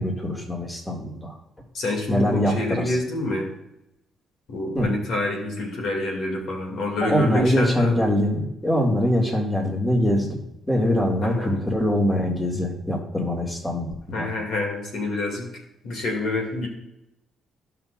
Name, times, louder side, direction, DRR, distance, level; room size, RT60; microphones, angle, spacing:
voice 1, 0.0-1.3 2.1-3.0 4.7-4.9 7.0-10.4 10.7-14.3, left 1 dB, 15° left, 0 dB, 2.1 m, -23 dB
voice 2, 1.7-3.5 4.5-8.0 11.2-11.6 14.1-15.5 15.8-16.7, left 2 dB, 75° left, 0 dB, 2.3 m, -27 dB
15.0 x 5.8 x 2.5 m, 0.86 s
cardioid pair, 90°, 0 cm